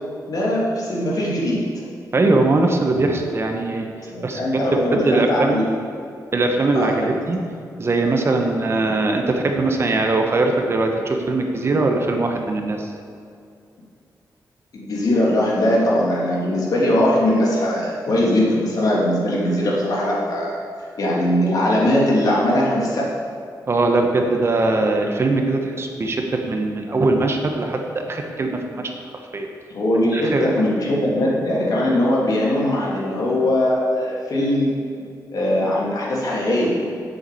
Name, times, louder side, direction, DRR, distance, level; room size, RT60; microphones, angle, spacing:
voice 1, 0.3-1.6 4.1-5.7 6.7-7.1 14.7-20.6 21.0-23.1 29.7-34.7 35.3-36.8, left 1 dB, 60° left, -4 dB, 3.0 m, -20 dB
voice 2, 2.1-3.9 4.2-5.6 6.3-7.4 7.8-12.9 23.7-28.8 29.3-29.5 30.1-30.5, right 2 dB, 40° right, 3 dB, 1.2 m, -21 dB
8.1 x 7.3 x 8.5 m, 2.3 s
wide cardioid pair, 135°, 7 cm